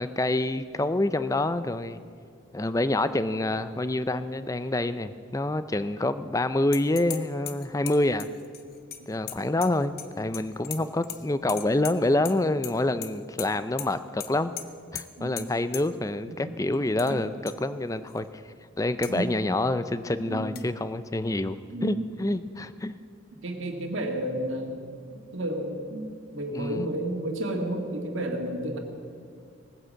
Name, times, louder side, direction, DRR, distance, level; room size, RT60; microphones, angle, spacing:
voice 1, 0.0-2.0 2.5-8.3 9.1-14.5 14.9-18.4 18.8-22.9 26.5-26.9, left 2 dB, 15° left, 13 dB, 0.4 m, -27 dB
sound 1, 6.7-7.2 7.5-10.1 10.3-11.2 11.5-12.3 12.6-13.1 13.4-13.5 13.8-13.9 14.2-14.3 14.6-14.7 14.9-15.0 15.4-15.5 15.7-15.8 16.7-17.1 17.5-17.6 18.1-18.2 19.0-19.1 20.5-20.6, left 11 dB, 50° left, 0.8 m, -37 dB
voice 2, 16.3-16.8 17.1-17.2 19.1-19.3 20.2-20.7 21.7-22.0 23.4-28.8, right 1 dB, 70° right, 2 dB, 2.1 m, -32 dB
18.5 x 9.6 x 7.6 m, 2.2 s
head